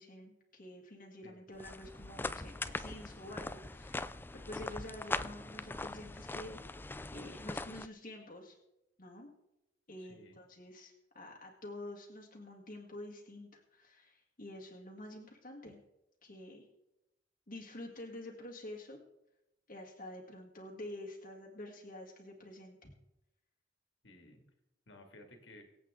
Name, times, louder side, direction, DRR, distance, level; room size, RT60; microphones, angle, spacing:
voice 1, 0.0-8.6 9.0-9.3 9.9-15.8 16.2-16.6 17.5-19.0 19.7-22.9, left 1 dB, 45° left, -1 dB, 1.9 m, -48 dB
sound 1, 1.5-7.9, left 2 dB, 10° left, 0.3 m, -41 dB
voice 2, 10.0-10.4 24.0-24.4 24.9-25.6, left 1 dB, 70° left, 4 dB, 2.3 m, -56 dB
24.0 x 8.3 x 3.7 m, 0.90 s
head